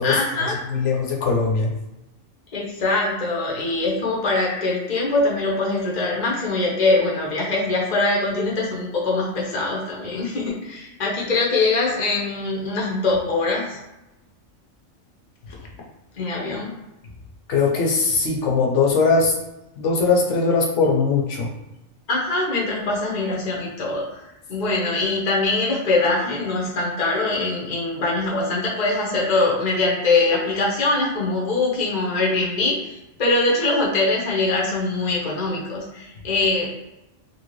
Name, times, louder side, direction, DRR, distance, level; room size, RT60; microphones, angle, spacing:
voice 1, 0.0-0.5 2.5-13.8 16.2-16.7 22.1-36.7, left 3 dB, 45° left, -3 dB, 0.7 m, -23 dB
voice 2, 0.7-1.7 17.5-19.3 19.8-21.5, left 4 dB, 70° left, -1 dB, 1.0 m, -20 dB
2.9 x 2.7 x 3.0 m, 0.94 s
omnidirectional pair, 1.3 m